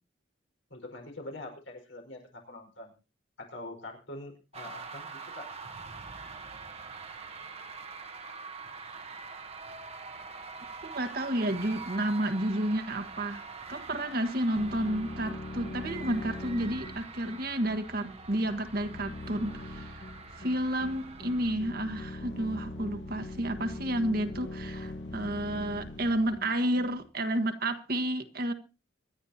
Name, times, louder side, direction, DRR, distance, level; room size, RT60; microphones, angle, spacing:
voice 1, 0.7-2.9 3.4-5.5, left 2 dB, 90° left, 5.0 m, -44 dB
sound 1, 4.5-21.5, right 4 dB, 35° right, 1.1 m, -44 dB
sound 2, 9.3-26.3, left 2 dB, 70° left, 1.2 m, -55 dB
voice 2, 10.8-20.0 20.3-28.5, right 1 dB, 50° right, 1.4 m, -31 dB
sound 3, 14.5-27.0, left 2 dB, 55° left, 1.5 m, -42 dB
26.0 x 11.0 x 2.9 m
head